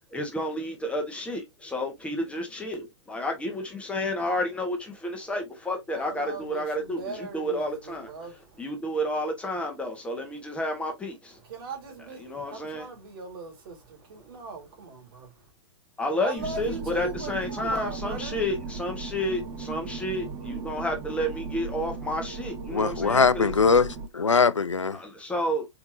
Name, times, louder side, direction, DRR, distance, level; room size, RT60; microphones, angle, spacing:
voice 1, 0.1-8.1 8.6-11.4 12.2-12.9 16.0-23.5 24.9-25.7, left 1 dB, 10° left, 1.2 m, -31 dB
voice 2, 5.9-8.6 11.4-15.5 16.2-18.4, right 4 dB, 50° right, 2.1 m, -39 dB
sound 1, 16.4-24.1, right 4 dB, 25° right, 0.8 m, -37 dB
voice 3, 22.7-25.0, left 5 dB, 90° left, 0.4 m, -22 dB
4.6 x 3.5 x 2.7 m
figure-of-eight pair, 115°, 15 cm